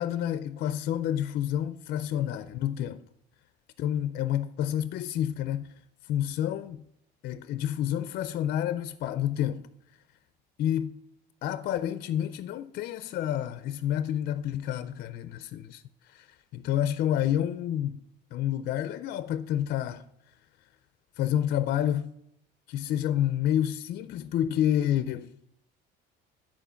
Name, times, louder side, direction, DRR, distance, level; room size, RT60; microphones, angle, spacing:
voice 1, 0.0-3.0 3.8-5.7 6.1-6.8 7.2-9.7 10.6-11.0 11.4-18.0 18.3-20.0 21.2-22.1 22.7-25.3, left 11 dB, 50° left, 0.4 m, -29 dB
10.5 x 4.4 x 5.6 m
cardioid pair, 150°, 20 cm